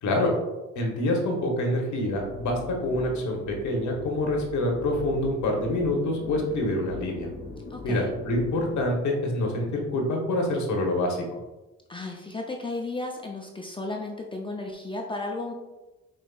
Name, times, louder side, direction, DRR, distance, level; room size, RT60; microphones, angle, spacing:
voice 1, 0.0-0.3 0.7-7.3 7.8-11.4, left 1 dB, 70° left, 1 dB, 1.1 m, -26 dB
sound 1, 2.1-9.0, left 3 dB, 45° left, 0.7 m, -41 dB
voice 2, 7.7-8.1 11.9-15.5, left 2 dB, 15° left, 0 dB, 0.5 m, -34 dB
5.3 x 3.0 x 2.4 m, 1.1 s
cardioid pair, 90°, 30 cm